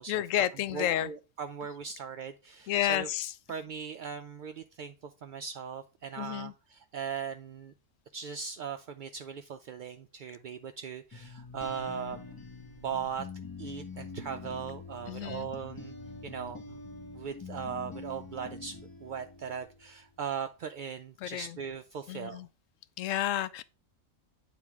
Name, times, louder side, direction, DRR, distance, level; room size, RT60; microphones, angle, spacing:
voice 1, 0.1-1.1 2.7-3.3 6.2-6.5 15.1-15.5 21.2-21.6 22.1-22.5 23.0-23.6, left 12 dB, 80° left, 0.9 m, -31 dB
voice 2, 0.7-3.1 3.5-7.7 8.1-12.2 12.8-13.3 13.6-15.9 16.2-16.8 17.1-22.5, right 7 dB, 65° right, 0.5 m, -39 dB
sound 1, 11.1-19.8, left 4 dB, 25° left, 0.5 m, -45 dB
9.0 x 3.8 x 3.5 m
omnidirectional pair, 1.3 m